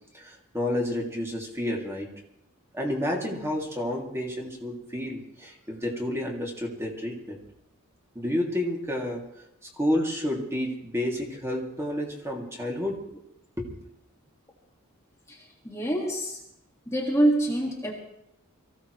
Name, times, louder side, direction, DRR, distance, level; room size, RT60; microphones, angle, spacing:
voice 1, 0.1-2.1 2.7-7.4 8.1-9.2 9.6-13.0 13.6-13.7, left 1 dB, 10° right, -1 dB, 2.7 m, -30 dB
voice 2, 15.6-16.4 16.9-17.9, right 1 dB, 15° left, -2 dB, 2.0 m, -25 dB
24.0 x 16.0 x 3.3 m, 0.81 s
head